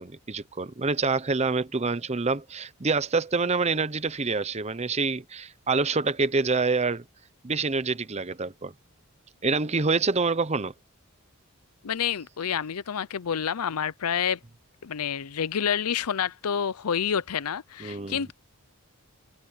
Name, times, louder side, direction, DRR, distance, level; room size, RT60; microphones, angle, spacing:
voice 1, 0.0-7.0 7.4-8.7 9.4-10.7 17.8-18.3, right 4 dB, 30° right, 0.8 m, -26 dB
voice 2, 11.8-14.4 14.8-18.3, left 8 dB, 90° left, 0.6 m, -28 dB
head